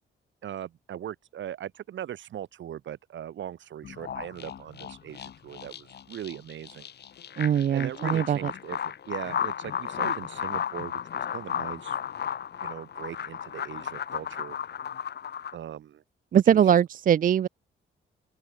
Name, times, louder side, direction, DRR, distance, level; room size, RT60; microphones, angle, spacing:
voice 1, 0.4-6.9 7.7-12.0 12.6-14.6 15.5-16.0 16.3-16.6, right 10 dB, 75° right, 6.8 m, -39 dB
sound 1, 3.8-15.6, left 8 dB, 60° left, 3.0 m, -34 dB
voice 2, 7.4-8.5 16.3-17.5, right 9 dB, 45° right, 0.5 m, -21 dB
open air
cardioid pair, 105°, 20 cm